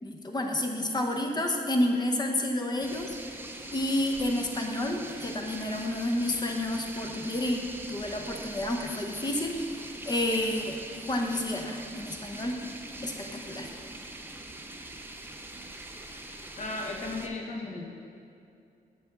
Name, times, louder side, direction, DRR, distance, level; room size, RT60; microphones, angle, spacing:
voice 1, 0.0-3.2 3.7-12.6 13.0-13.7, left 1 dB, 25° left, 2 dB, 0.8 m, -30 dB
sound 1, 2.8-17.3, right 2 dB, 15° right, 0.5 m, -43 dB
voice 2, 16.6-17.9, left 2 dB, 45° left, 0 dB, 1.1 m, -35 dB
8.4 x 6.7 x 3.7 m, 2.6 s
wide cardioid pair, 115°, 16 cm